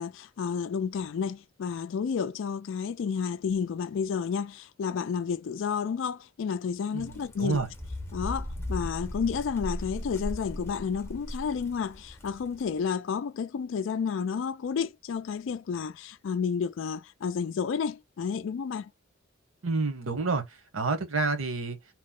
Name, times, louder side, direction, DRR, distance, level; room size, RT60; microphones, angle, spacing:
voice 1, 0.0-7.6 8.1-18.9, left 6 dB, 65° left, 0.3 m, -31 dB
voice 2, 6.9-7.7 19.6-21.8, right 3 dB, 85° right, 0.9 m, -29 dB
sound 1, 7.0-12.7, left 1 dB, 10° left, 0.6 m, -38 dB
2.9 x 2.0 x 3.6 m
head